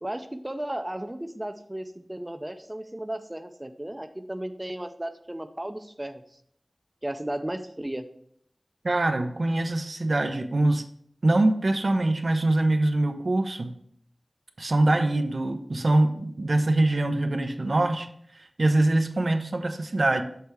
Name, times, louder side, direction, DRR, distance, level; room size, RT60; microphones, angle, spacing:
voice 1, 0.0-6.4 7.0-8.1, right 1 dB, 20° right, 7 dB, 0.5 m, -35 dB
voice 2, 8.8-10.8 11.2-13.8 14.6-18.1 18.3-20.2, right 2 dB, 70° right, 6 dB, 0.5 m, -23 dB
6.8 x 3.3 x 4.6 m, 0.66 s
wide cardioid pair, 40°, 0 cm